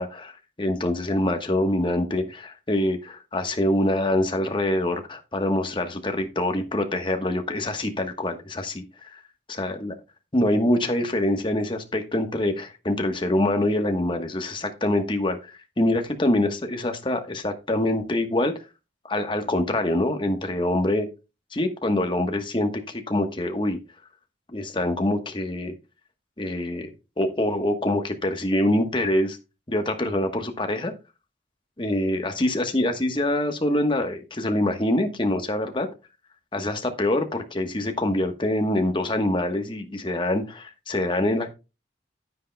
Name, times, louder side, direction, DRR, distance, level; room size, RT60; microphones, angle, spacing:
voice 1, 0.0-9.2 9.6-9.9 10.3-18.5 19.0-21.1 21.5-23.8 24.5-25.7 26.4-26.9 27.2-29.4 29.7-30.9 31.8-35.9 36.5-41.5, left 1 dB, 25° left, 5 dB, 1.2 m, -25 dB
10.0 x 9.5 x 2.3 m, 0.28 s
head